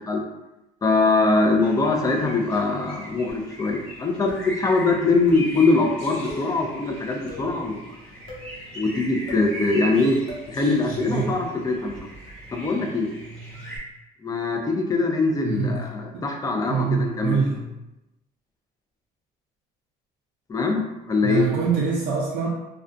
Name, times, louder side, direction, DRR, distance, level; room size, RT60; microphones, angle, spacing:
voice 1, 0.8-8.0 8.7-10.2 10.5-11.9 12.5-13.1 14.2-17.6 20.5-20.8 21.1-21.5, left 3 dB, 20° left, 2 dB, 0.4 m, -22 dB
sound 1, 1.6-13.8, right 1 dB, 5° left, 1.1 m, -39 dB
sound 2, 3.3-3.7 4.3-4.7 5.3-5.6 6.3-6.6 7.3-7.6 8.3-8.6 9.3-9.5 10.3-10.5, left 2 dB, 80° left, 0.8 m, -39 dB
voice 2, 15.4-15.8 16.7-17.6 21.2-22.5, right 5 dB, 85° right, -4 dB, 0.5 m, -24 dB
2.4 x 2.2 x 2.5 m, 0.97 s
cardioid pair, 110°, 17 cm